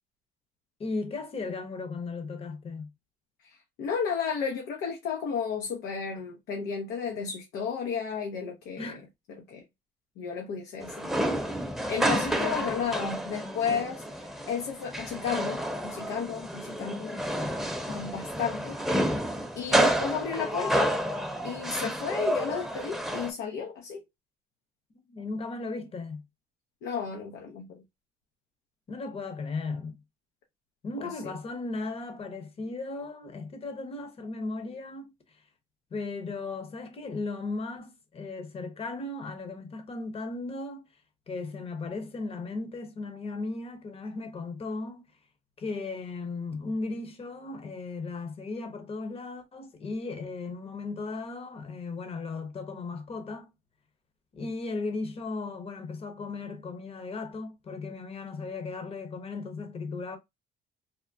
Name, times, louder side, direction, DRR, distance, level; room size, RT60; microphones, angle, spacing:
voice 1, 0.8-2.9 8.8-9.1 12.1-12.6 21.8-21.9 25.1-26.2 28.9-30.0 30.8-35.4 35.9-40.8 41.3-45.1 45.6-53.5 54.3-60.2, left 3 dB, 35° left, 0.9 m, -36 dB
voice 2, 3.4-9.0 9.3-9.6 10.2-11.1 11.5-11.6 11.9-14.0 14.5-17.2 17.9-18.8 19.6-21.0 21.4-24.0 26.8-27.8 31.0-31.3, left 6 dB, 80° left, 0.7 m, -33 dB
sound 1, 10.8-23.3, right 1 dB, ahead, 0.7 m, -30 dB
3.6 x 2.1 x 2.5 m
cardioid pair, 110°, 17 cm